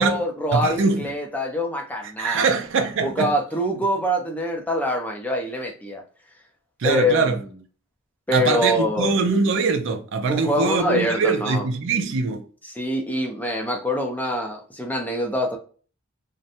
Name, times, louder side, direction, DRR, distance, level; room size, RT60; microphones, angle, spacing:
voice 1, 0.0-2.5 3.0-6.0 6.8-7.5 8.3-9.2 10.3-11.7 12.7-15.6, equal, 10° left, 0.5 m, -25 dB
voice 2, 0.5-1.1 2.2-3.3 6.8-7.4 8.3-12.4, right 4 dB, 65° right, 0.4 m, -22 dB
2.5 x 2.1 x 2.7 m
head